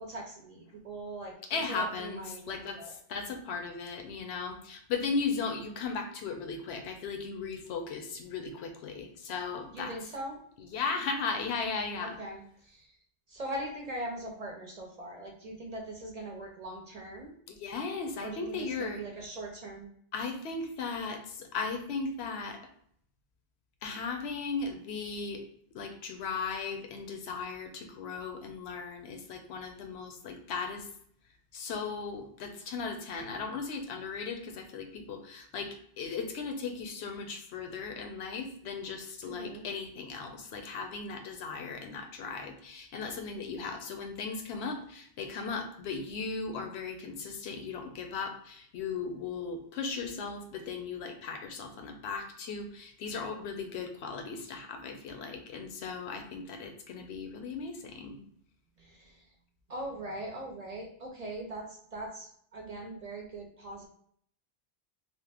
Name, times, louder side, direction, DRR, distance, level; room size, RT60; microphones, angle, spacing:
voice 1, 0.0-3.0 9.7-10.4 12.0-12.9 13.3-17.4 18.2-19.9 39.2-39.6 58.8-59.3 59.7-63.9, right 1 dB, 50° right, 0 dB, 0.5 m, -41 dB
voice 2, 1.5-9.9 10.6-12.2 17.5-19.0 20.1-22.6 23.8-25.4 25.7-30.9 31.5-58.2, left 4 dB, 85° left, 5 dB, 0.8 m, -37 dB
2.9 x 2.1 x 3.3 m, 0.63 s
omnidirectional pair, 1.1 m